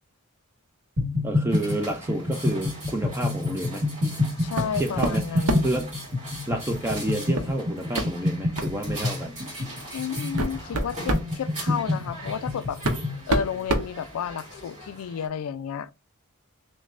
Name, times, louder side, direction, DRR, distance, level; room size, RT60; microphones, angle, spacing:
sound 1, 1.0-13.2, left 2 dB, 50° right, 1.6 m, -28 dB
voice 1, 1.2-3.8 4.8-5.9 6.5-9.4, right 1 dB, 10° right, 0.4 m, -29 dB
sound 2, 1.5-15.3, right 1 dB, 35° right, 2.3 m, -41 dB
voice 2, 4.4-5.7 9.9-12.8 13.3-15.9, left 8 dB, 70° left, 0.3 m, -32 dB
sound 3, 4.6-4.7 5.0-5.8 7.4-7.5 8.0-8.1 8.6-8.8 9.6-9.7 10.2-11.3 12.3-12.4 12.8-14.6, right 2 dB, 85° right, 0.7 m, -27 dB
6.2 x 2.1 x 2.5 m
head